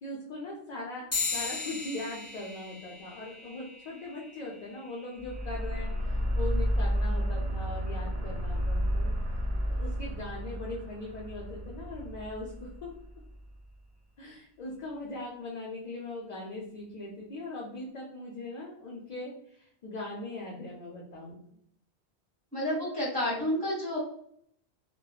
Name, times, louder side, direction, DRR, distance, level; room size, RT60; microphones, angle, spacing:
voice 1, 0.0-9.1 9.7-12.9 14.2-21.4, left 2 dB, 55° left, -3 dB, 0.5 m, -40 dB
sound 1, 1.1-10.9, left 4 dB, 25° left, 1.5 m, -41 dB
sound 2, 5.2-13.5, equal, 75° right, 0.8 m, -31 dB
voice 2, 22.5-24.0, left 1 dB, 5° left, -7 dB, 1.4 m, -30 dB
3.0 x 2.1 x 2.3 m, 0.69 s
omnidirectional pair, 1.1 m